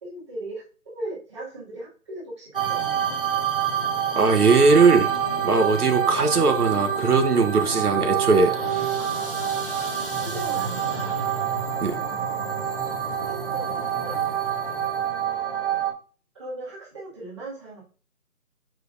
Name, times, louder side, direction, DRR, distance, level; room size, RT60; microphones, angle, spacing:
voice 1, 0.0-3.1 8.4-9.6 10.2-11.3 12.0-12.5 13.0-14.2 15.0-15.9 16.3-17.8, right 2 dB, 20° right, -6 dB, 2.0 m, -39 dB
sound 1, 2.5-15.9, right 8 dB, 35° right, 1.1 m, -27 dB
voice 2, 4.1-5.1 5.4-8.5 11.8-12.0, right 4 dB, 75° right, 6 dB, 1.1 m, -19 dB
7.6 x 5.1 x 2.5 m, 0.38 s
figure-of-eight pair, 165°, 45 cm